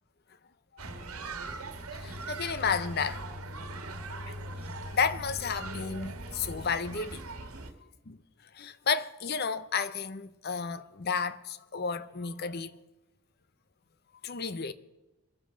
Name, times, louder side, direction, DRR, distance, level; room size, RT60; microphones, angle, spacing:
sound 1, 0.8-7.7, right 2 dB, 85° right, 1.5 m, -40 dB
voice 1, 2.0-3.2 4.7-7.2 8.1-8.2 8.5-12.8 14.2-14.7, left 5 dB, 45° left, 0.7 m, -32 dB
23.5 x 7.9 x 5.1 m
head